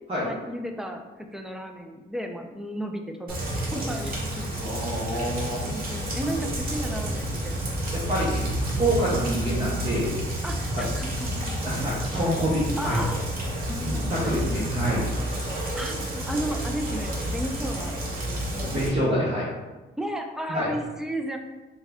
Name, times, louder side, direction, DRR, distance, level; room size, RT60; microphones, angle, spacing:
voice 1, 0.2-1.0 1.3-3.4 3.7-4.7 5.6-7.6 8.7-8.9 9.2-9.4 10.4-11.9 12.8-13.2 13.7-14.3 15.7-18.7 20.0-21.4, right 1 dB, ahead, 4 dB, 0.4 m, -34 dB
Rain, 3.3-18.9, right 1 dB, 50° right, 1.0 m, -30 dB
voice 2, 4.6-5.7 7.9-10.2 11.6-13.0 13.9-15.1 18.5-19.5 20.5-20.7, right 1 dB, 30° right, -7 dB, 0.9 m, -27 dB
3.4 x 2.3 x 3.4 m, 1.2 s
cardioid pair, 90°, 20 cm